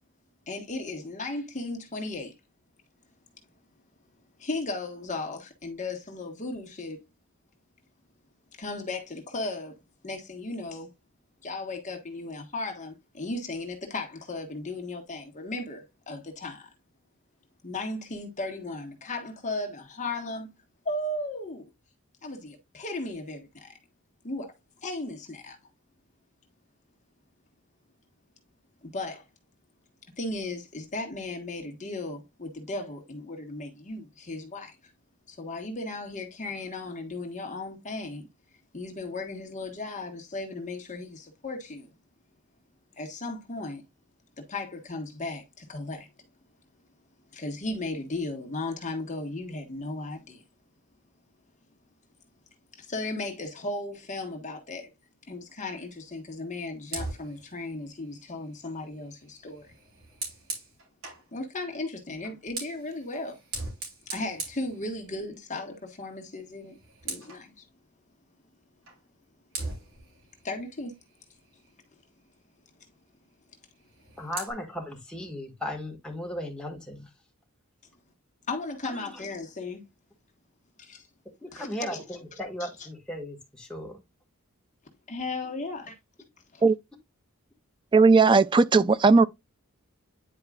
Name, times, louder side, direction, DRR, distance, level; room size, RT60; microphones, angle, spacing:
voice 1, 0.5-2.3 4.4-7.0 8.6-9.7 10.0-10.9 11.4-16.7 17.6-20.5 20.8-21.6 22.2-23.8 24.2-24.5 24.8-25.6 28.8-29.2 30.2-34.8 35.3-38.3 38.7-41.9 43.0-43.8 44.5-46.1 47.3-50.4 52.8-54.9 55.3-59.7 61.3-63.4 64.1-66.8 67.0-67.6 70.4-70.9 78.5-79.8 80.8-81.1 81.5-82.9 85.1-85.9 86.5-86.6, left 2 dB, 35° left, 1.4 m, -36 dB
Fire, 56.8-61.3 62.2-65.4 65.8-66.1 66.4-67.5 68.9-69.0 69.5-71.8 73.7-74.5, right 3 dB, 60° right, 4.0 m, -41 dB
voice 2, 74.2-77.1 78.8-79.1 81.4-84.0, left 1 dB, 5° left, 1.8 m, -36 dB
voice 3, 87.9-89.3, right 4 dB, 20° right, 0.3 m, -17 dB
9.8 x 4.7 x 2.4 m
head